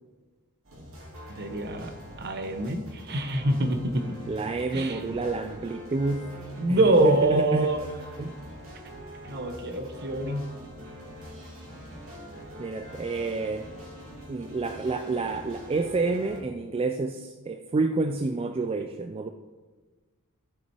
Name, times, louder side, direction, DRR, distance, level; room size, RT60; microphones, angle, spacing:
sound 1, 0.6-16.4, equal, 65° right, 2.6 m, -44 dB
voice 1, 1.4-1.9 2.2-4.0 4.7-5.2 6.6-7.8 9.2-10.4, right 2 dB, 50° right, 7 dB, 0.9 m, -25 dB
voice 2, 4.3-6.3 6.7-7.9 8.2-8.3 12.6-13.7 14.3-19.3, right 3 dB, 25° right, 7 dB, 0.3 m, -29 dB
13.0 x 5.8 x 4.5 m, 1.4 s
head